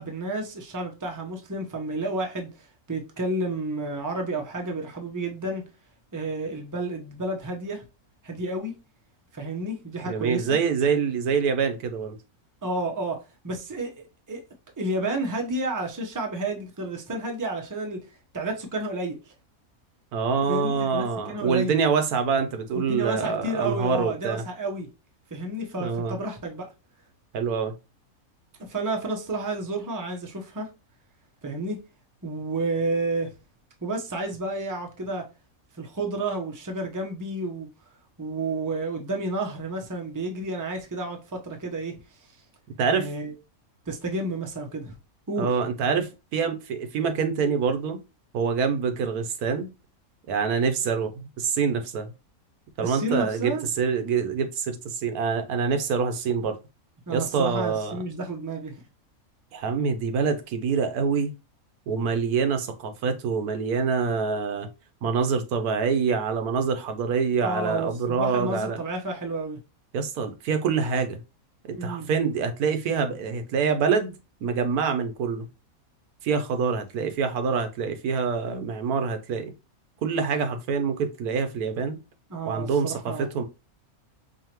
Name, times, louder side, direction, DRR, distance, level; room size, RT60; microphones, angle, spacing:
voice 1, 0.0-5.6 6.1-7.8 8.2-8.7 9.3-10.6 12.6-13.2 13.4-13.9 14.3-14.4 14.8-18.0 18.3-19.2 20.5-21.8 22.7-24.9 25.3-26.7 28.6-30.7 31.4-31.8 32.2-33.3 33.8-35.3 35.8-37.7 38.2-42.0 42.9-43.3 43.9-44.9 45.3-45.5 52.8-53.7 57.1-58.8 67.4-69.6 71.7-72.1 82.3-83.3, right 2 dB, 15° right, 0.7 m, -31 dB
voice 2, 10.0-12.2 20.1-24.4 25.7-26.2 27.3-27.7 42.8-43.1 45.4-48.0 48.3-49.7 50.3-52.1 52.8-56.6 57.1-58.0 59.5-61.3 61.9-64.7 65.0-68.8 69.9-71.2 71.8-74.1 74.4-75.5 76.2-79.5 80.0-82.0 82.4-83.4, right 5 dB, 90° right, 1.3 m, -25 dB
4.9 x 2.9 x 2.9 m
omnidirectional pair, 1.5 m